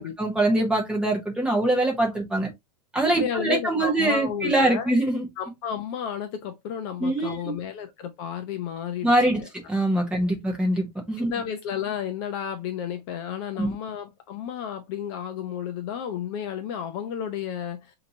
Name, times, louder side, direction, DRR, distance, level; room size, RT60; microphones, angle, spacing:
voice 1, 0.0-2.5 2.9-5.3 7.0-7.6 9.0-9.4 9.7-11.3 13.6-13.7, right 1 dB, 5° right, 1.0 m, -23 dB
voice 2, 3.1-4.9 5.4-9.5 11.2-17.9, left 8 dB, 35° left, 0.6 m, -32 dB
6.1 x 2.9 x 2.7 m
supercardioid pair, 170°, 21 cm